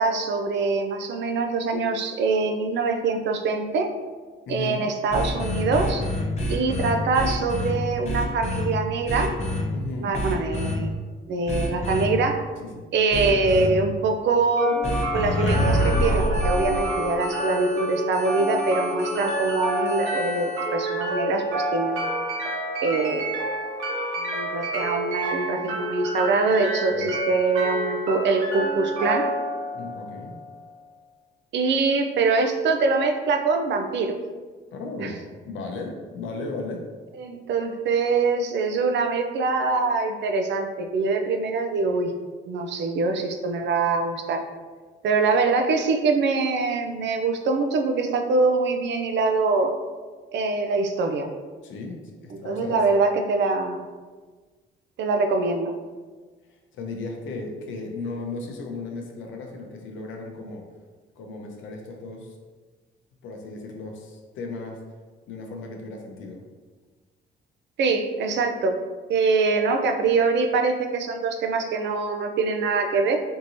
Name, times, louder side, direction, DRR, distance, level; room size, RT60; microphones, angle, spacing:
voice 1, 0.0-3.9 4.5-6.1 6.5-9.3 10.0-10.9 11.3-12.4 12.9-14.8 15.1-22.1 22.8-23.3 24.2-29.3 31.5-34.2 35.0-35.1 37.2-42.1 42.5-44.4 45.0-49.7 50.3-51.3 52.3-53.8 55.0-55.7 67.8-68.8 69.1-73.2, right 3 dB, 65° right, 5 dB, 0.5 m, -24 dB
voice 2, 4.5-4.8 9.7-10.2 12.6-12.8 26.9-27.1 29.7-30.3 34.7-36.8 51.6-52.8 56.5-60.6 61.2-62.4 63.2-64.8 65.3-66.4, left 3 dB, 75° left, 1 dB, 0.6 m, -35 dB
sound 1, 5.1-7.7 8.0-8.6 9.1-9.6 10.1-10.8 11.5-12.0 13.1-13.7 14.8-20.7, equal, 35° left, 0.8 m, -27 dB
sound 2, 14.6-30.6, right 1 dB, 90° right, 0.8 m, -29 dB
3.6 x 2.8 x 2.6 m, 1.4 s
cardioid pair, 90°, 20 cm